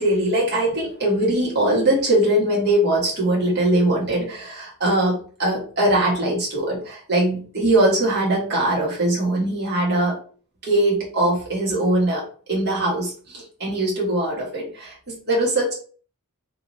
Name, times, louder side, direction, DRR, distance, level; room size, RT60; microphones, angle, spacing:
voice 1, 0.0-10.1 10.6-15.7, right 1 dB, 50° right, -4 dB, 1.3 m, -21 dB
3.0 x 2.7 x 2.6 m, 0.42 s
head